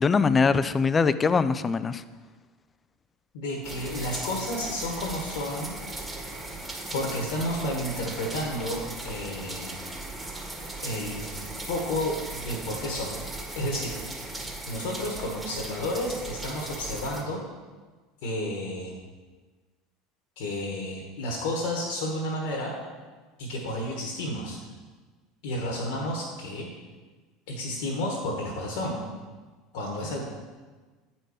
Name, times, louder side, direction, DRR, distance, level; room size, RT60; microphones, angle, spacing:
voice 1, 0.0-2.0, left 5 dB, 25° left, 14 dB, 0.4 m, -22 dB
voice 2, 3.3-5.8 6.9-9.7 10.8-13.2 13.5-14.0 14.7-17.4 18.2-18.9 20.4-22.7 23.4-24.6 25.4-26.7 27.5-29.1 29.7-30.2, left 1 dB, 70° left, -2 dB, 1.4 m, -31 dB
sound 1, 3.6-17.2, right 2 dB, 15° right, 1.7 m, -38 dB
8.9 x 4.4 x 4.9 m, 1.4 s
hypercardioid pair, 85°, 0 cm